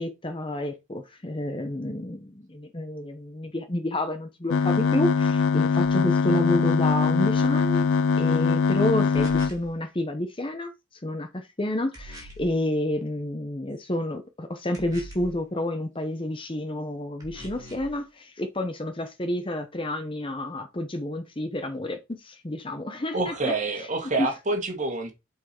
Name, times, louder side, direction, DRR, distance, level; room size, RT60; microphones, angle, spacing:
voice 1, 0.0-7.9 8.2-10.7 11.0-23.5 24.2-24.3, left 1 dB, 25° left, 0.8 m, -29 dB
sound 1, 4.5-9.5, left 5 dB, 65° left, 0.3 m, -22 dB
sound 2, 9.1-9.7 11.9-12.5 14.7-15.4 17.2-17.9, right 1 dB, 20° right, 3.4 m, -42 dB
voice 2, 23.1-25.1, right 3 dB, 35° right, 1.8 m, -27 dB
7.9 x 4.8 x 4.4 m
head